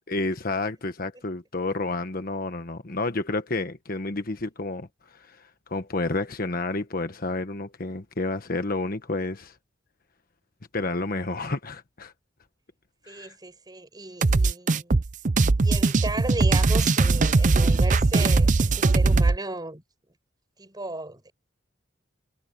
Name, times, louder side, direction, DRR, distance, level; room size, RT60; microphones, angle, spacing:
voice 1, 0.1-9.5 10.7-12.1 13.1-13.3, left 2 dB, 50° left, 1.3 m, -30 dB
voice 2, 13.1-15.0 15.6-19.8 20.6-21.3, right 2 dB, 20° right, 5.8 m, -35 dB
sound 1, 14.2-19.4, right 3 dB, 40° right, 0.6 m, -20 dB
head